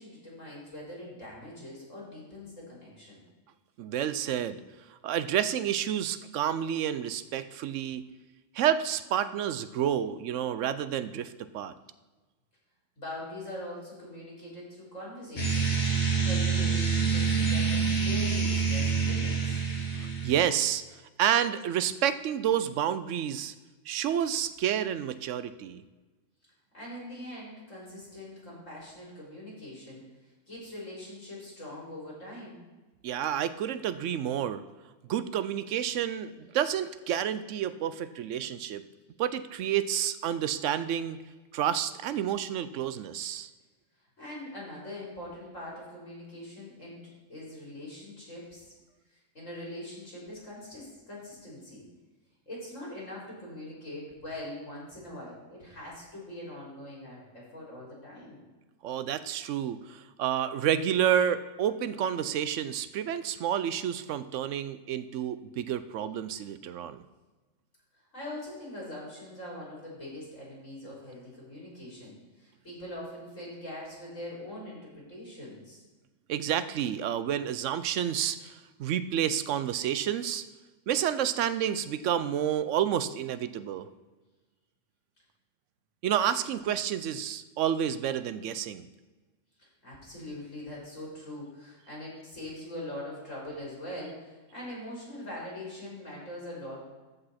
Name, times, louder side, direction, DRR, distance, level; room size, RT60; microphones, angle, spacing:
voice 1, 0.0-3.2 13.0-19.6 26.7-30.0 30.5-32.6 44.2-48.7 49.1-51.9 52.5-58.4 67.9-75.8 89.6-96.8, left 1 dB, 80° left, -4 dB, 4.2 m, -42 dB
voice 2, 3.8-4.6 5.0-8.0 8.5-11.7 20.0-20.8 21.2-23.5 23.9-25.8 33.0-34.6 35.1-38.8 39.2-41.2 41.5-43.5 58.8-67.0 76.3-80.4 80.9-83.9 86.0-88.9, right 10 dB, 75° right, 14 dB, 0.9 m, -29 dB
sound 1, 15.4-20.4, right 5 dB, 40° left, 1.8 m, -27 dB
14.0 x 5.3 x 4.2 m, 1.2 s
omnidirectional pair, 1.3 m